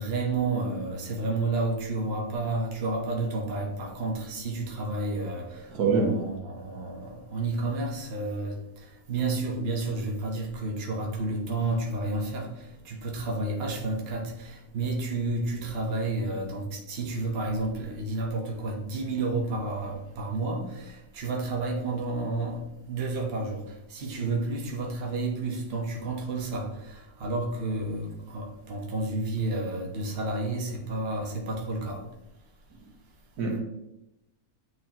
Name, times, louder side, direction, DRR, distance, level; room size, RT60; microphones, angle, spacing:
voice 1, 0.0-32.1, right 2 dB, 45° right, 1.3 m, -31 dB
voice 2, 5.7-6.2 33.4-33.6, right 4 dB, 90° right, 1.8 m, -24 dB
9.0 x 4.1 x 2.9 m
omnidirectional pair, 1.6 m